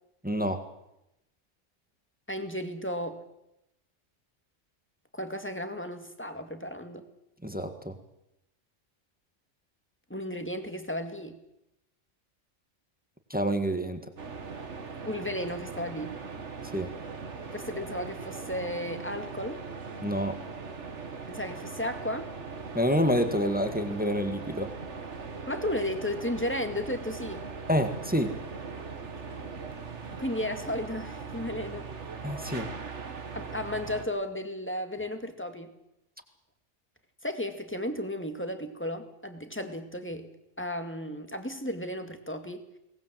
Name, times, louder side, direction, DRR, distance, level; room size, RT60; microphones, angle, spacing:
voice 1, 0.2-0.6 7.4-8.0 13.3-14.0 16.7-16.9 20.0-20.4 22.7-24.7 27.7-28.3 32.2-32.7, equal, 5° right, 7 dB, 1.8 m, -27 dB
voice 2, 2.3-3.2 5.1-7.1 10.1-11.4 15.0-16.2 17.5-19.6 21.3-22.3 25.5-27.5 30.1-31.9 33.3-35.7 37.2-40.3 40.6-42.7, left 1 dB, 10° left, 7 dB, 2.1 m, -34 dB
sound 1, 14.2-34.1, right 5 dB, 65° right, 2.0 m, -40 dB
23.0 x 19.0 x 7.7 m, 0.86 s
omnidirectional pair, 1.3 m